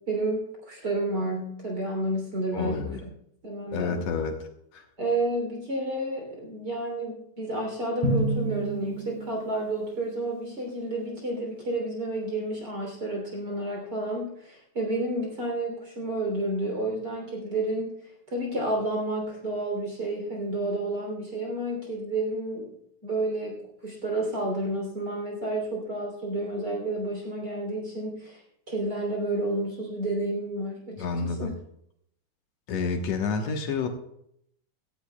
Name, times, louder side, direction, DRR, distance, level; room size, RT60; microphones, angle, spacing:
voice 1, 0.1-3.0 3.4-4.0 5.0-17.9 18.3-22.7 23.0-28.4 28.7-31.5, right 1 dB, 30° right, 0 dB, 3.2 m, -30 dB
voice 2, 2.5-3.0 3.7-4.4 4.7-4.8 31.0-31.5 32.7-33.9, left 4 dB, 70° left, 5 dB, 1.6 m, -29 dB
Drum, 8.0-10.2, right 2 dB, 80° right, 1.1 m, -30 dB
17.0 x 15.0 x 2.3 m, 0.73 s
omnidirectional pair, 4.4 m